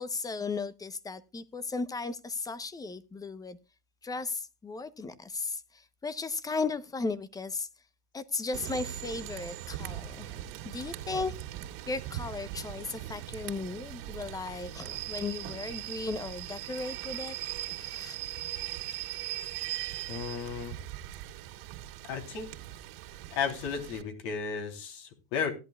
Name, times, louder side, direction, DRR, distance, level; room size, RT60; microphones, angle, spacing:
voice 1, 0.0-3.6 4.0-7.7 8.1-11.3 11.9-17.3 17.8-18.1, left 4 dB, 10° left, 0.9 m, -36 dB
Rain / Train, 8.5-24.0, right 13 dB, 70° right, 2.6 m, -40 dB
voice 2, 20.1-20.8 22.0-22.5 23.3-25.5, left 6 dB, 70° left, 3.5 m, -34 dB
17.0 x 11.0 x 2.4 m
supercardioid pair, 135°, 29 cm